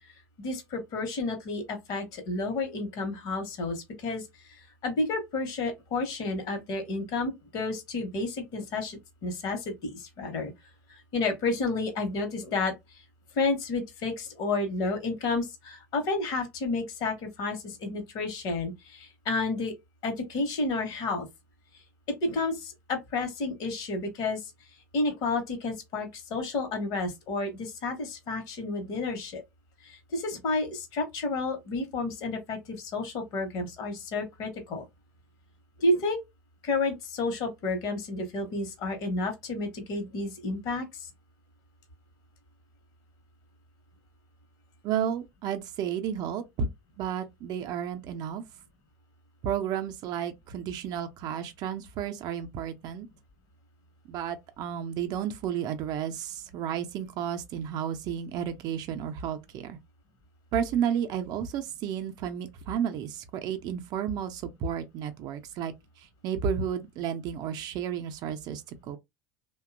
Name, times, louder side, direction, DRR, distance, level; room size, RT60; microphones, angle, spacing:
voice 1, 0.4-4.2 4.8-10.5 10.9-12.7 13.4-19.7 20.0-21.3 22.2-24.4 24.9-29.4 29.8-34.8 35.8-36.2 36.6-41.1, left 3 dB, 50° left, 0.9 m, -31 dB
voice 2, 44.8-46.7 47.0-48.4 49.4-53.1 54.1-59.8 60.5-65.7 66.2-69.0, right 8 dB, 45° right, 0.5 m, -32 dB
2.7 x 2.2 x 2.4 m
figure-of-eight pair, 75°, 9 cm